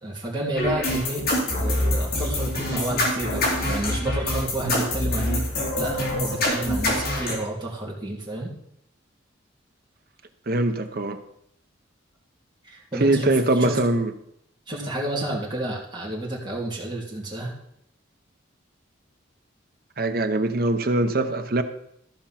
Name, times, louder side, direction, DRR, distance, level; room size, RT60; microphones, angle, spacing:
voice 1, 0.0-5.4 5.8-8.5 12.6-13.8 14.7-17.5, right 1 dB, 20° right, -4 dB, 2.7 m, -30 dB
sound 1, 0.6-7.3, left 1 dB, 50° left, 2.8 m, -25 dB
voice 2, 10.5-11.2 13.0-14.1 20.0-21.6, right 2 dB, 45° right, 8 dB, 0.8 m, -22 dB
13.5 x 5.2 x 5.8 m, 0.75 s
head